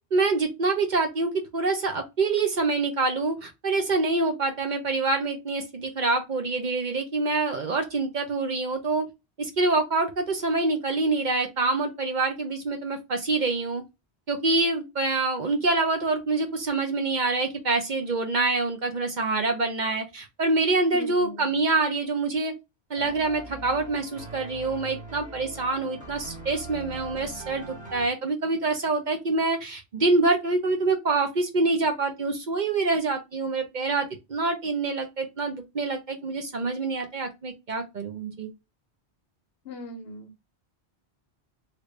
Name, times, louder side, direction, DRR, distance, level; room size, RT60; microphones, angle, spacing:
voice 1, 0.1-9.1 9.4-13.8 14.3-22.5 22.9-38.5, right 3 dB, 50° right, 0.7 m, -26 dB
voice 2, 20.9-21.5 39.6-40.4, left 1 dB, 65° left, 0.9 m, -40 dB
sound 1, 23.0-28.1, right 2 dB, 10° right, 1.2 m, -42 dB
3.2 x 2.5 x 3.1 m
omnidirectional pair, 1.1 m